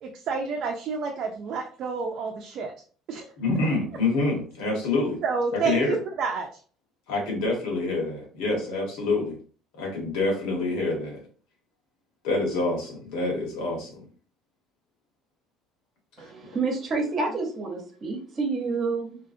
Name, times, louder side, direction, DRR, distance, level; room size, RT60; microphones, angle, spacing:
voice 1, 0.0-2.7 3.1-3.3 5.2-6.6, right 5 dB, 55° right, 1 dB, 0.4 m, -29 dB
voice 2, 3.4-5.2 5.5-6.0 7.1-9.4 9.8-11.2 12.2-14.1 16.2-16.3, left 2 dB, 80° left, -1 dB, 1.3 m, -27 dB
voice 3, 16.2-19.2, right 3 dB, 40° right, 2 dB, 0.9 m, -29 dB
2.4 x 2.4 x 2.6 m, 0.41 s
cardioid pair, 105°, 0 cm